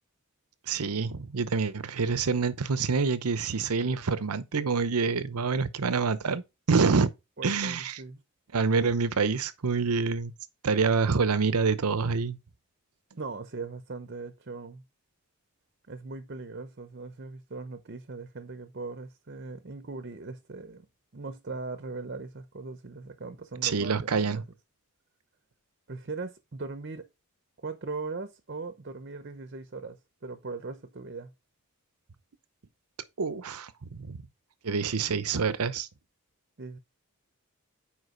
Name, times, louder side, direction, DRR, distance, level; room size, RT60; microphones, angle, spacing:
voice 1, 0.7-7.1 7.4-8.0 8.5-10.3 10.6-12.4 23.6-24.4 33.2-33.7 34.0-34.2 34.6-35.9, right 5 dB, 85° right, 0.8 m, -27 dB
voice 2, 7.4-8.2 13.2-14.8 15.9-20.9 21.1-24.4 25.9-27.1 27.6-31.3 36.6-36.8, right 3 dB, 45° right, 0.7 m, -39 dB
8.1 x 5.1 x 3.8 m
head